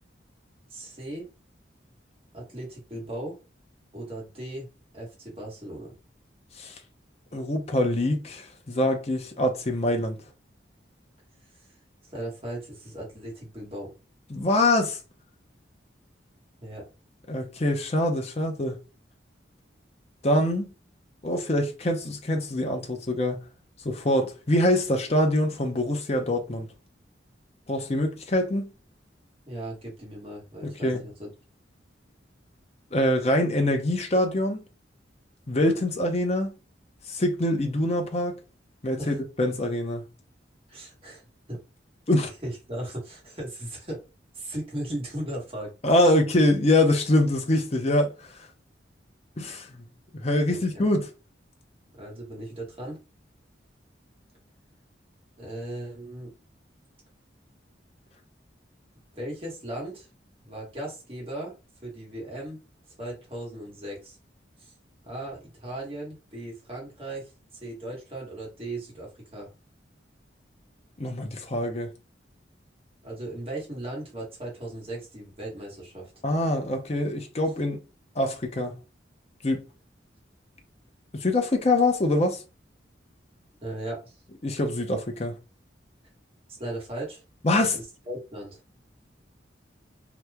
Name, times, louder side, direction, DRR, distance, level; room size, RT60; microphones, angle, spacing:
voice 1, 0.7-1.3 2.3-3.4 3.9-4.7 4.9-5.9 12.1-13.9 16.6-16.9 29.4-31.3 39.0-39.2 40.7-41.6 42.4-44.0 44.3-45.7 46.0-46.1 50.5-50.8 52.0-53.0 55.4-56.3 59.1-60.1 60.4-61.5 61.8-62.6 63.0-64.2 64.6-64.7 65.0-67.3 67.6-69.5 73.0-76.1 83.6-84.1 86.5-87.2 87.7-88.6, right 1 dB, 30° right, 1.5 m, -37 dB
voice 2, 7.3-10.2 14.3-15.0 17.3-18.8 20.2-20.7 21.2-23.4 23.8-26.7 27.7-28.7 30.6-31.0 32.9-34.6 35.5-36.5 37.1-38.4 38.8-40.0 42.1-42.3 45.8-48.1 49.4-49.8 50.2-51.1 71.0-71.9 76.2-77.8 78.2-78.8 79.4-79.6 81.1-82.4 84.4-85.3 87.4-87.8, left 1 dB, 35° left, 0.7 m, -24 dB
2.9 x 2.4 x 3.4 m
head